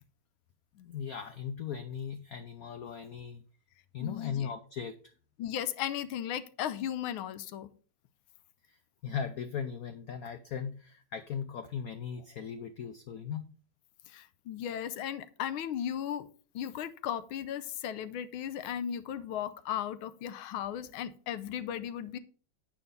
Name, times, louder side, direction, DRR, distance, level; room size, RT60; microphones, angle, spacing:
voice 1, 0.7-3.4 3.9-5.0 8.7-13.5, left 7 dB, 70° left, 0.8 m, -38 dB
voice 2, 4.0-4.5 5.4-7.7 14.1-16.3 16.5-22.2, left 10 dB, 90° left, 1.6 m, -36 dB
8.9 x 5.0 x 5.3 m
omnidirectional pair, 2.2 m